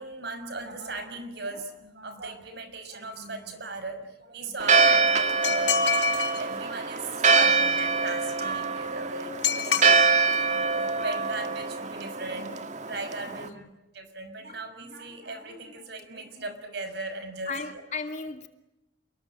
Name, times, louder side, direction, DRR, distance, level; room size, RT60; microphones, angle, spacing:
voice 1, 0.0-5.9 6.4-10.1 10.5-12.6 12.9-13.6 13.9-17.8, right 2 dB, 60° right, 5.9 m, -37 dB
Church bell, 4.6-13.5, right 4 dB, 40° right, 1.8 m, -24 dB
sound 1, 5.4-6.4 9.4-9.9, left 7 dB, 70° left, 5.5 m, -26 dB
voice 2, 13.3-13.6 17.5-18.5, left 4 dB, 40° left, 2.6 m, -35 dB
29.5 x 21.5 x 8.7 m
head